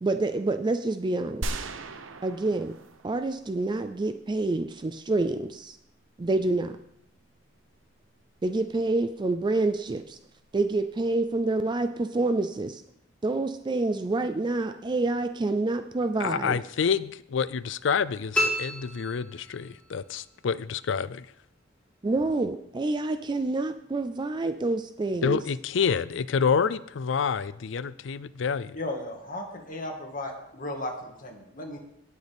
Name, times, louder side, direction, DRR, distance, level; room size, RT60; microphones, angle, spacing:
voice 1, 0.0-1.7 2.2-2.8 3.0-5.8 6.2-6.8 8.4-10.2 10.5-12.8 13.2-16.6 22.0-25.4, right 2 dB, 25° right, 9 dB, 0.4 m, -27 dB
sound 1, 1.4-3.7, right 2 dB, 90° right, 0.8 m, -37 dB
voice 2, 16.2-21.3 25.2-28.8, left 6 dB, 70° left, 17 dB, 0.4 m, -28 dB
sound 2, 18.3-19.9, left 1 dB, 5° left, 3.1 m, -30 dB
voice 3, 28.7-31.8, left 1 dB, 45° left, 2 dB, 1.8 m, -35 dB
18.0 x 6.5 x 3.5 m, 0.77 s
head